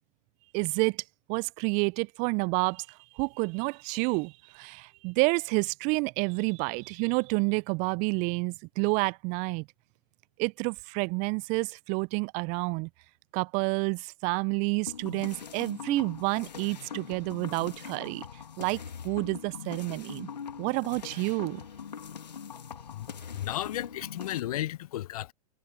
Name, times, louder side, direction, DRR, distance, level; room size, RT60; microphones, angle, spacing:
voice 1, 0.5-1.0 1.3-9.7 10.4-12.9 13.3-18.2 18.6-20.3 20.6-21.6, right 31 dB, 35° right, 0.5 m, -29 dB
sound 1, 14.9-24.4, left 7 dB, 80° left, 1.7 m, -42 dB
voice 2, 23.3-25.3, left 14 dB, 60° left, 0.8 m, -34 dB
figure-of-eight pair, 105°, 21 cm